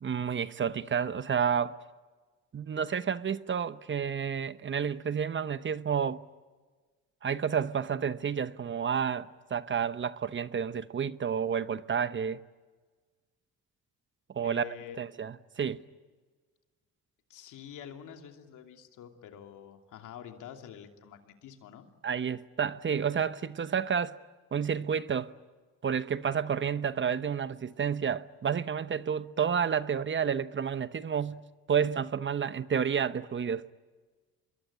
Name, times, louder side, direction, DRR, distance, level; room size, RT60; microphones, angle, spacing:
voice 1, 0.0-1.8 2.5-6.2 7.2-12.4 14.3-14.7 15.0-15.8 22.0-24.2 24.5-25.3 25.8-31.4 31.7-33.7, right 7 dB, 40° right, 1.0 m, -30 dB
voice 2, 14.4-15.0 17.3-21.9, left 9 dB, 85° left, 2.8 m, -47 dB
26.0 x 22.5 x 9.9 m
cardioid pair, 90°, 30 cm